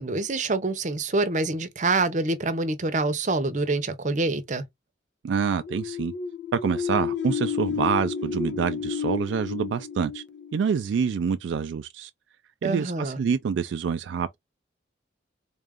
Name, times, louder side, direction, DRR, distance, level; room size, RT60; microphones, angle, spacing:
voice 1, 0.0-4.6 12.6-13.2, right 3 dB, 40° right, 0.7 m, -26 dB
voice 2, 5.2-6.1 6.5-10.2 10.5-12.1 12.6-14.4, right 6 dB, 75° right, 0.3 m, -26 dB
sound 1, 5.5-11.2, left 7 dB, 70° left, 0.6 m, -31 dB
3.7 x 2.5 x 3.5 m
head